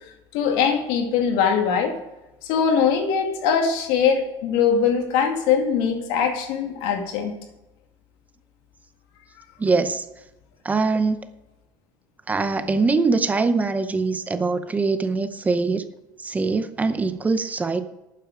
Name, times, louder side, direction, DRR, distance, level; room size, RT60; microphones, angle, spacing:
voice 1, 0.3-2.0 2.4-7.3, left 6 dB, 75° left, 4 dB, 2.3 m, -21 dB
voice 2, 9.6-10.1 10.6-11.2 12.3-15.8 16.2-17.9, right 4 dB, 15° right, 11 dB, 0.6 m, -22 dB
12.0 x 9.2 x 4.8 m, 0.99 s
cardioid pair, 145°, 10 cm